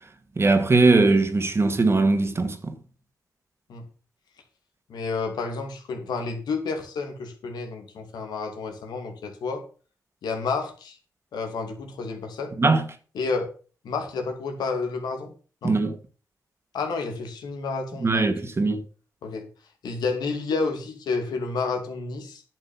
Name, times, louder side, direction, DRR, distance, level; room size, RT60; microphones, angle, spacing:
voice 1, 0.4-2.7 12.6-12.8 15.6-16.0 18.0-18.8, right 3 dB, 35° right, 2.0 m, -20 dB
voice 2, 4.9-9.6 10.2-11.0 11.3-12.5 13.1-13.5 13.8-15.3 15.6-15.8 16.7-18.2 19.2-19.4 19.8-22.4, left 4 dB, 80° left, 2.6 m, -30 dB
10.5 x 6.2 x 7.1 m
cardioid pair, 60°, 7 cm